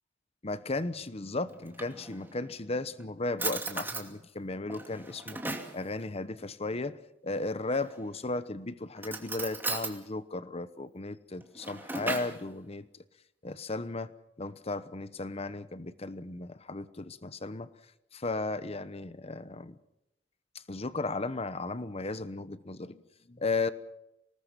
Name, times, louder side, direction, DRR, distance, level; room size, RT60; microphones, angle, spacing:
voice 1, 0.4-5.4 5.7-7.0 7.2-12.9 13.4-14.1 14.4-17.7 18.1-19.8 20.5-23.7, left 3 dB, 35° left, 14 dB, 1.0 m, -35 dB
Drawer open or close, 1.5-2.4 3.0-3.1 3.4-4.1 4.7-5.8 7.7-8.2 9.0-10.0 11.3-12.4, right 3 dB, 10° right, 2.5 m, -36 dB
26.0 x 19.0 x 5.9 m, 0.86 s
head